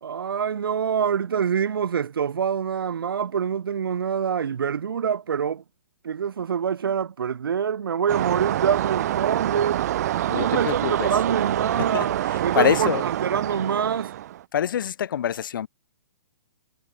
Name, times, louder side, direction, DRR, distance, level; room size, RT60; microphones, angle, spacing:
voice 1, 0.0-5.6 6.0-9.8 10.3-14.1, right 7 dB, 75° right, 2.5 m, -26 dB
sound 1, 8.1-14.4, right 12 dB, 45° right, 0.5 m, -26 dB
voice 2, 10.3-11.1 11.8-13.0 14.5-15.7, left 9 dB, 65° left, 1.0 m, -26 dB
hypercardioid pair, 155°, 12 cm